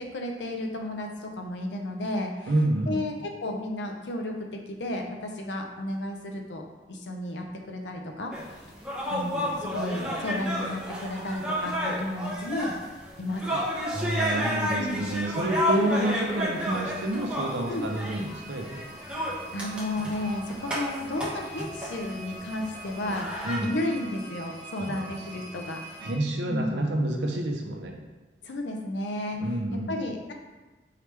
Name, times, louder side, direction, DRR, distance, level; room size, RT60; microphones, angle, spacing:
voice 1, 0.0-2.5 2.9-4.3 4.7-6.6 6.9-8.6 9.1-12.7 13.2-13.6 14.8-15.0 15.9-16.0 17.7-18.0 19.3-25.8 26.5-26.8 28.4-29.4 29.7-30.3, left 1 dB, 80° left, 2 dB, 0.6 m, -33 dB
voice 2, 2.5-3.0 13.9-18.8 23.4-23.7 24.8-25.1 26.0-27.9 29.4-29.9, right 1 dB, 75° right, 2 dB, 0.7 m, -28 dB
sound 1, 8.3-23.6, equal, 5° right, 1.1 m, -32 dB
sound 2, 16.5-26.1, right 2 dB, 10° left, 1.3 m, -44 dB
4.7 x 3.2 x 3.4 m, 1.2 s
head